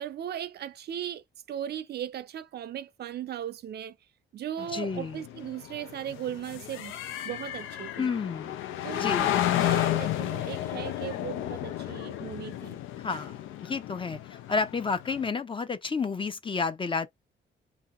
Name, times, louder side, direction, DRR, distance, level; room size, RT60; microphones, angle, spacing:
voice 1, 0.0-4.0 4.3-7.0 7.2-8.1 8.8-12.8, right 10 dB, 55° right, 0.4 m, -37 dB
sound 1, 4.6-15.3, left 13 dB, 85° left, 0.5 m, -32 dB
voice 2, 4.7-5.2 8.0-8.6 9.0-9.3 13.0-13.3 13.6-17.1, left 4 dB, 25° left, 0.6 m, -30 dB
2.8 x 2.7 x 3.5 m
cardioid pair, 90°, 20 cm